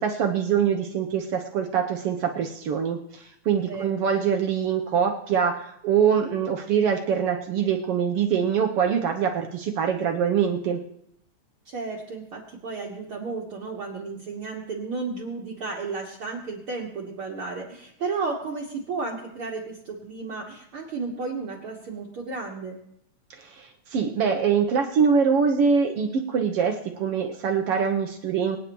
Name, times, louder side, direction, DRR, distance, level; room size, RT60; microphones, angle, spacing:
voice 1, 0.0-10.8 23.3-28.6, right 7 dB, 70° right, 4 dB, 1.4 m, -24 dB
voice 2, 3.6-4.0 11.7-22.8, right 4 dB, 55° right, -2 dB, 1.8 m, -33 dB
25.5 x 9.2 x 3.0 m, 0.74 s
omnidirectional pair, 3.5 m